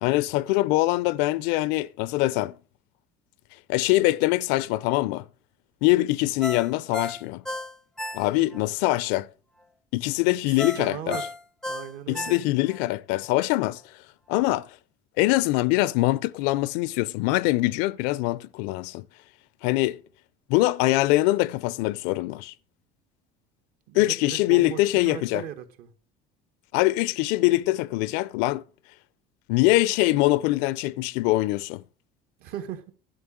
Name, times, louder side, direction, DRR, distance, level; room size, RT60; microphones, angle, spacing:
voice 1, 0.0-2.5 3.7-5.2 5.8-7.4 8.1-9.3 9.9-11.2 12.1-13.8 14.3-14.7 15.2-19.0 19.6-20.0 20.5-22.5 23.9-25.4 26.7-28.6 29.5-31.8, left 18 dB, 80° left, 0.5 m, -23 dB
Ringtone, 6.4-8.7 9.0-9.1 10.6-12.8 13.2-13.3, left 1 dB, 5° left, 0.5 m, -34 dB
voice 2, 10.4-11.3 11.7-12.4 23.9-25.9 32.4-32.9, right 10 dB, 65° right, 1.6 m, -38 dB
11.5 x 5.2 x 8.5 m
cardioid pair, 130°, 17 cm